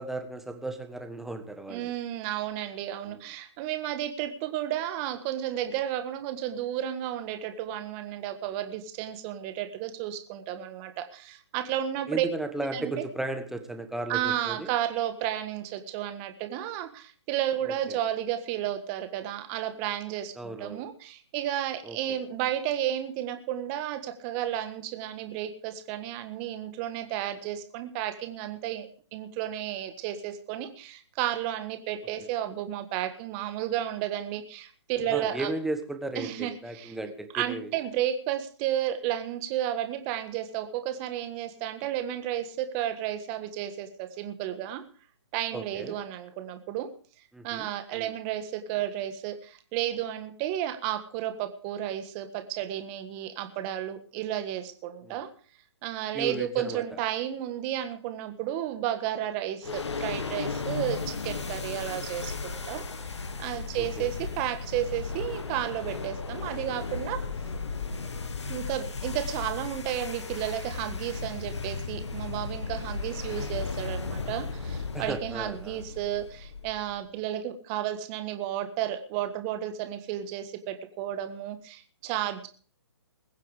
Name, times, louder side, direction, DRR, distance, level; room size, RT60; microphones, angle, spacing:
voice 1, 0.0-1.9 3.1-3.2 12.1-14.7 17.6-18.0 20.3-20.8 21.8-22.2 35.1-37.7 45.5-46.0 47.3-47.7 47.9-48.1 55.0-55.2 56.1-56.8 59.7-59.8 63.8-64.1 74.9-75.8, right 2 dB, ahead, 6 dB, 1.4 m, -35 dB
voice 2, 1.7-12.2 12.7-12.9 14.1-35.5 36.1-36.9 37.3-44.8 45.3-46.9 47.4-55.3 55.8-63.1 63.4-67.2 68.5-82.5, right 11 dB, 30° right, 8 dB, 1.6 m, -32 dB
sound 1, 59.6-77.0, left 4 dB, 80° left, 1.8 m, -35 dB
21.5 x 7.6 x 5.0 m, 0.41 s
hypercardioid pair, 140°, 14 cm